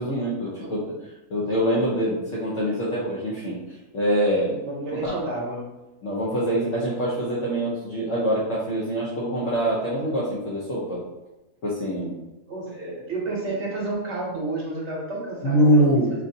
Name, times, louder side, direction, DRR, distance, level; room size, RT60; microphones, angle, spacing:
voice 1, 0.0-4.6 5.0-5.2 6.0-11.0 11.6-12.2 12.8-12.9 15.4-16.1, equal, 60° left, -7 dB, 1.1 m, -24 dB
voice 2, 4.6-5.6 12.5-16.2, right 2 dB, 55° right, -3 dB, 1.1 m, -31 dB
5.3 x 2.6 x 2.7 m, 1.0 s
omnidirectional pair, 1.6 m